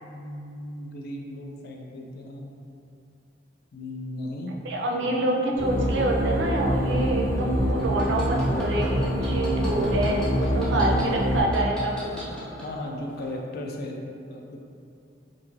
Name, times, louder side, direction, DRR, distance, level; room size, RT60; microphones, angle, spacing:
voice 1, 0.0-2.5 3.7-4.6 12.1-14.6, left 1 dB, 55° left, 1 dB, 0.3 m, -36 dB
voice 2, 4.6-12.3, right 1 dB, 75° right, -1 dB, 0.4 m, -26 dB
sound 1, 5.6-11.4, equal, 85° left, 1.2 m, -25 dB
sound 2, 7.8-11.0 11.5-12.7 13.2-13.3, equal, 5° left, 0.6 m, -40 dB
2.5 x 2.4 x 3.0 m, 2.6 s
head